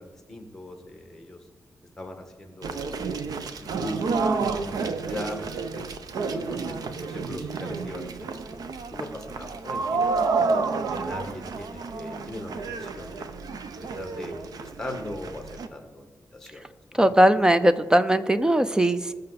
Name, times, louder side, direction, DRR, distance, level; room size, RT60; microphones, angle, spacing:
voice 1, 0.0-1.4 2.0-3.3 3.6-5.9 6.3-10.4 10.9-13.4 13.8-16.6 16.9-17.3, left 1 dB, 10° left, 4 dB, 1.7 m, -40 dB
sound 1, 2.6-15.7, right 4 dB, 80° right, 0.7 m, -30 dB
voice 2, 17.0-19.1, right 1 dB, 10° right, 12 dB, 0.4 m, -19 dB
19.5 x 6.6 x 4.2 m, 1.4 s
wide cardioid pair, 145°, 6 cm